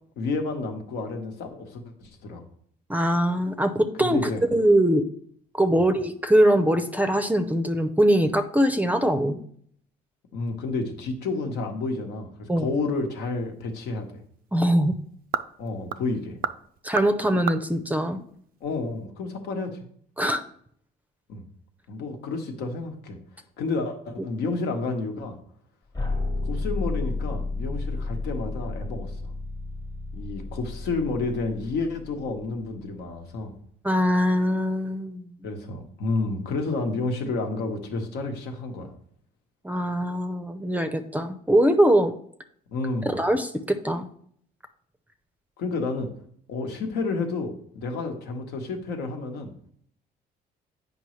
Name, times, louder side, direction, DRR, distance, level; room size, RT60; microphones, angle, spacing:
voice 1, 0.2-2.4 4.0-4.4 5.8-5.9 10.3-14.2 15.6-16.4 18.6-19.8 21.3-21.5 21.9-23.2 23.6-25.4 26.4-29.3 30.1-33.5 35.4-38.9 42.7-43.2 45.6-46.1 46.5-49.5, left 3 dB, 80° left, 4 dB, 1.2 m, -30 dB
voice 2, 2.9-5.1 5.5-9.4 12.5-12.7 14.5-14.9 16.8-18.2 20.2-20.4 33.8-35.5 39.6-42.1 43.1-44.1, right 1 dB, 10° right, 9 dB, 0.5 m, -22 dB
sound 1, 13.2-19.0, right 9 dB, 60° right, 0.4 m, -36 dB
sound 2, 25.9-32.9, left 2 dB, 25° left, 1.0 m, -32 dB
8.1 x 5.3 x 3.1 m, 0.62 s
cardioid pair, 110°, 17 cm